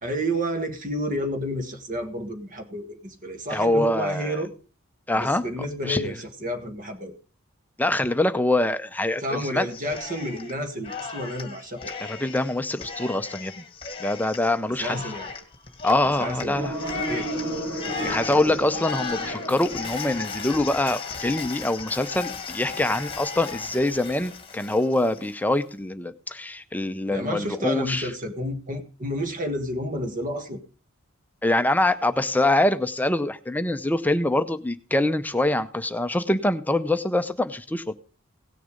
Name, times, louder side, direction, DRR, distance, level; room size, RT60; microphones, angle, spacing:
voice 1, 0.0-4.5 5.1-7.2 9.2-12.1 14.8-15.3 16.2-16.6 16.9-17.3 17.8-18.2 18.5-18.6 27.1-30.6, equal, 40° right, 8 dB, 1.6 m, -30 dB
voice 2, 3.5-4.4 5.1-5.4 5.8-6.2 7.8-9.7 12.1-13.6 14.0-15.0 15.8-16.8 18.0-28.1 31.4-37.9, left 1 dB, 10° left, 11 dB, 0.6 m, -24 dB
Cheering, 9.7-10.5 10.8-25.3, left 5 dB, 25° left, 1.7 m, -36 dB
sound 1, 16.5-20.9, right 1 dB, 80° right, 7.9 m, -34 dB
17.5 x 6.7 x 5.1 m, 0.39 s
head